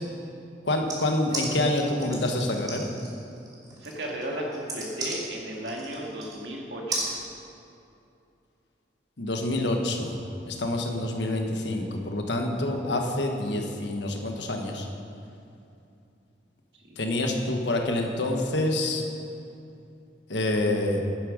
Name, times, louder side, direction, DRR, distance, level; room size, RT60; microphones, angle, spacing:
voice 1, 0.6-2.9 9.2-10.2 10.4-14.9 17.0-19.0 20.3-21.0, left 1 dB, 85° left, 3 dB, 1.4 m, -27 dB
sound 1, 0.9-6.4 6.9-7.1, right 2 dB, 20° right, 2.6 m, -34 dB
voice 2, 3.8-7.1 16.8-17.0, right 1 dB, 70° right, -1 dB, 2.2 m, -35 dB
11.0 x 11.0 x 5.2 m, 2.7 s
head